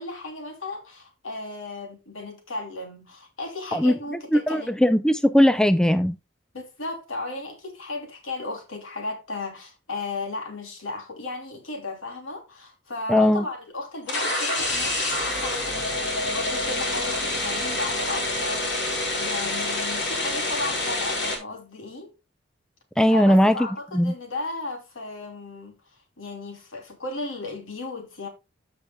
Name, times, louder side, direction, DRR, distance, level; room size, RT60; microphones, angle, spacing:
voice 1, 0.0-4.8 6.5-18.8 19.2-22.1 23.1-25.8 26.2-28.3, left 2 dB, 90° left, 3.1 m, -35 dB
voice 2, 4.3-6.2 13.1-13.4 23.0-23.6 23.9-24.1, equal, 5° left, 0.4 m, -19 dB
sound 1, 14.0-21.4, left 2 dB, 60° left, 3.7 m, -27 dB
14.5 x 6.0 x 2.3 m
head